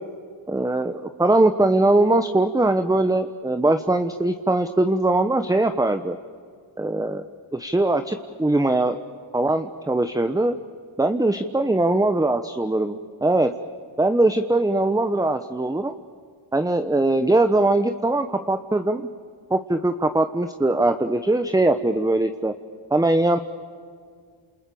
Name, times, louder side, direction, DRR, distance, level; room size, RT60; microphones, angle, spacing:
voice 1, 0.5-6.2 6.8-7.2 7.5-9.0 9.3-10.6 11.0-13.5 14.0-15.9 16.5-19.1 19.5-22.5 22.9-23.4, right 2 dB, 10° right, 9 dB, 1.1 m, -21 dB
29.0 x 28.0 x 7.1 m, 2.1 s
cardioid pair, 70°, 48 cm